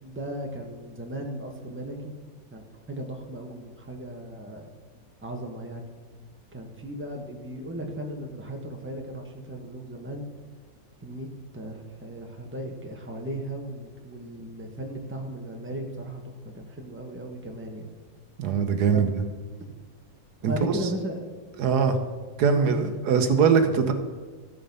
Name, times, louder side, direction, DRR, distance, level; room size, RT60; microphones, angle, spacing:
voice 1, 0.0-2.2 2.5-4.7 5.2-5.9 6.5-10.3 11.0-17.9 18.9-19.0 19.6-19.7 20.4-21.3 21.9-22.1 22.5-22.8, right 1 dB, 10° right, 2 dB, 1.2 m, -36 dB
voice 2, 18.4-19.1 20.4-20.5 21.6-22.0 22.4-23.9, right 6 dB, 85° right, 7 dB, 1.5 m, -21 dB
14.0 x 7.0 x 5.4 m, 1.4 s
omnidirectional pair, 1.7 m